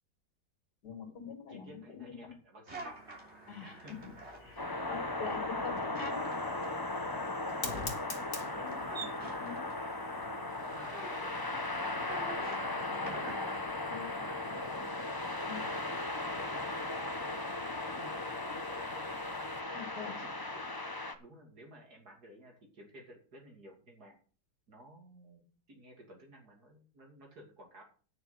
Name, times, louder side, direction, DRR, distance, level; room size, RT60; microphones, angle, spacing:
voice 1, 0.8-2.3 3.5-4.0 4.4-6.3 8.6-8.8 9.4-9.6 13.9-14.1 15.4-15.7 19.7-20.2, left 6 dB, 75° left, 1 dB, 3.0 m, -44 dB
voice 2, 1.5-3.0 3.6-3.9 8.1-10.0 10.6-11.4 11.8-15.1 15.6-15.9 16.2-19.2 20.0-20.8 21.2-24.1 24.7-27.8, right 1 dB, 70° right, 1 dB, 3.4 m, -55 dB
sound 1, 2.7-13.6, right 3 dB, 40° right, 3.5 m, -48 dB
Fire, 3.9-19.6, left 4 dB, 55° left, 2.3 m, -50 dB
sound 2, 4.6-21.1, left 2 dB, 15° left, 0.9 m, -37 dB
9.4 x 6.4 x 8.2 m, 0.39 s
omnidirectional pair, 1.7 m